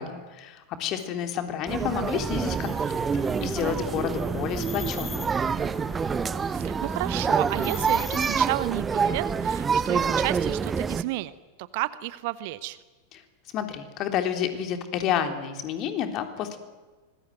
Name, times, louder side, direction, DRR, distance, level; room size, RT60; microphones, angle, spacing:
voice 1, 0.0-5.3 13.5-16.6, left 9 dB, 35° left, 6 dB, 3.6 m, -30 dB
sound 1, 1.7-11.0, right 6 dB, 20° right, 0.9 m, -27 dB
sound 2, 2.0-8.7, left 6 dB, 20° left, 2.5 m, -43 dB
voice 2, 6.5-11.3 11.6-12.8, right 17 dB, 50° right, 16 dB, 1.0 m, -32 dB
25.0 x 21.0 x 9.4 m, 1.3 s
figure-of-eight pair, 90°, 0 cm